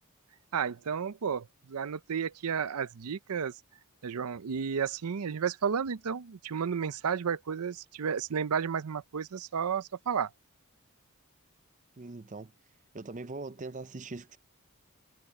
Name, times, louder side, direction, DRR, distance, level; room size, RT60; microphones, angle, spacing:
voice 1, 0.5-3.5 4.0-10.3, right 7 dB, 85° right, 0.5 m, -32 dB
voice 2, 12.0-12.5 12.9-14.4, right 3 dB, 35° right, 0.6 m, -41 dB
head